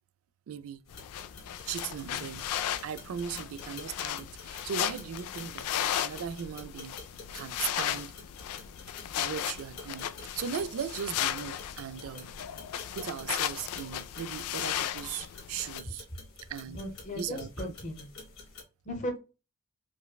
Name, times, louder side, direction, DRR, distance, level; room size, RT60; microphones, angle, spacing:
voice 1, 0.5-0.8 1.7-2.4 2.8-5.7 6.0-7.0 7.3-8.1 9.2-12.3 12.9-16.1 16.5-16.8 17.1-17.7, right 8 dB, 70° right, 0.3 m, -38 dB
sound 1, 0.9-15.8, left 11 dB, 90° left, 0.3 m, -36 dB
sound 2, 0.9-18.6, left 3 dB, 65° left, 1.5 m, -50 dB
voice 2, 16.7-18.1 18.8-19.2, equal, 30° left, 0.8 m, -36 dB
4.7 x 2.1 x 2.2 m
head